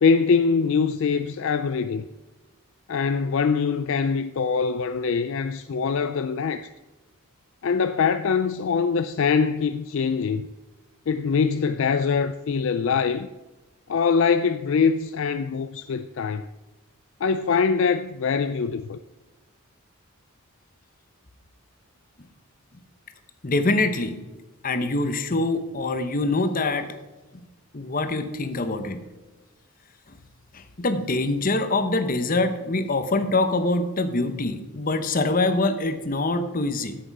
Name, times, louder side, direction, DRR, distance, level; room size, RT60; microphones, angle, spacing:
voice 1, 0.0-2.0 2.9-6.7 7.6-10.5 11.1-13.3 13.9-16.5 17.2-19.0, left 5 dB, 60° left, 0.4 m, -23 dB
voice 2, 23.4-24.2 24.6-26.9 27.7-29.0 30.5-37.0, left 2 dB, 40° left, 0.9 m, -24 dB
9.9 x 7.9 x 4.7 m
head